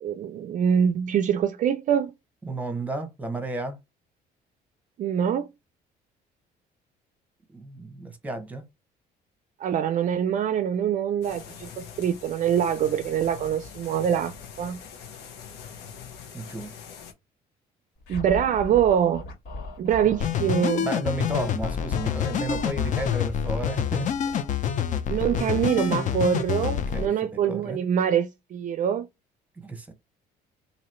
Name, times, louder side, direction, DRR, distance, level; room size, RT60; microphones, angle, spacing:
voice 1, 0.0-2.1 5.0-5.5 9.6-14.8 18.1-19.3 19.8-20.9 25.1-29.1, right 9 dB, 50° right, 0.4 m, -24 dB
voice 2, 2.4-3.8 7.5-8.7 16.3-16.7 20.8-24.3 26.9-27.8 29.6-29.9, right 2 dB, 10° right, 1.0 m, -33 dB
sound 1, 11.2-17.1, left 7 dB, 90° left, 1.1 m, -43 dB
Scratching (performance technique), 18.0-20.3 21.3-25.6, left 2 dB, 70° left, 2.1 m, -39 dB
sound 2, 20.2-27.1, left 8 dB, 50° left, 0.6 m, -27 dB
3.0 x 2.8 x 4.2 m
cardioid pair, 110°, 17 cm